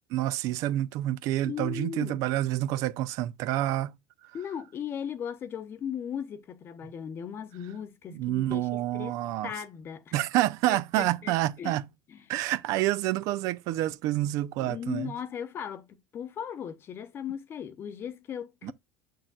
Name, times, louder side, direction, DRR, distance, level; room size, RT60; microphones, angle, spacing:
voice 1, 0.1-3.9 8.1-9.5 10.1-11.9 12.3-15.1 18.6-18.7, right 15 dB, 60° right, 0.6 m, -28 dB
voice 2, 1.5-2.2 4.3-9.2 9.4-10.2 10.7-11.8 12.1-12.3 14.6-18.7, left 8 dB, 40° left, 0.8 m, -37 dB
7.6 x 6.6 x 2.4 m
supercardioid pair, 105°, 6 cm